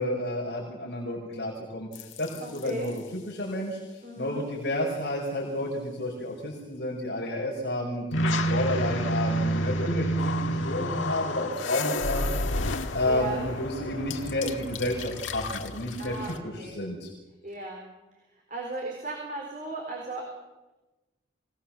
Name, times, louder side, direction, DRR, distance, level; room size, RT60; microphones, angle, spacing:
voice 1, 0.0-12.2 12.9-17.1, left 1 dB, 60° left, -3 dB, 5.4 m, -31 dB
sound 1, 1.9-2.8 8.1-16.4, equal, 90° left, 1.7 m, -29 dB
voice 2, 2.4-2.9 4.0-4.5 13.1-13.4 16.0-16.7 17.4-17.8 18.5-20.3, right 2 dB, 40° right, 0 dB, 4.2 m, -36 dB
25.5 x 18.5 x 7.4 m, 1.1 s
head